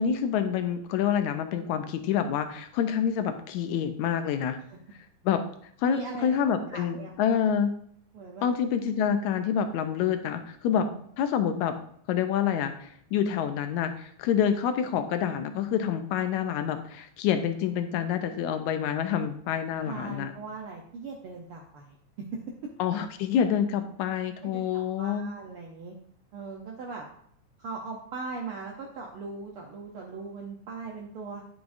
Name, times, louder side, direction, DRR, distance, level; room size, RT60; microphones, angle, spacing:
voice 1, 0.0-4.6 5.3-5.4 5.8-7.7 8.4-10.9 11.2-11.8 12.1-20.3 22.8-25.3, left 8 dB, 80° left, 8 dB, 2.0 m, -27 dB
voice 2, 5.8-7.1 8.1-8.5 10.7-11.0 19.8-22.4 24.4-25.9 26.3-27.1 27.6-31.4, right 4 dB, 75° right, 0 dB, 1.3 m, -40 dB
9.4 x 5.9 x 2.6 m, 0.64 s
omnidirectional pair, 3.4 m